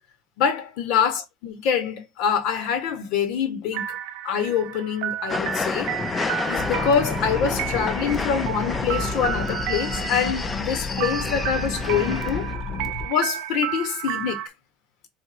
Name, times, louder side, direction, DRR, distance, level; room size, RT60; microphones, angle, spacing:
voice 1, 0.4-4.0 4.2-5.9 6.5-12.5 13.0-14.4, left 7 dB, 65° left, 1.4 m, -25 dB
sound 1, 3.7-14.5, right 12 dB, 70° right, 0.5 m, -32 dB
sound 2, 5.3-12.5, left 4 dB, 25° left, 0.5 m, -30 dB
sound 3, 6.6-13.1, left 4 dB, 45° left, 1.0 m, -32 dB
3.5 x 3.0 x 4.4 m
supercardioid pair, 105°, 0 cm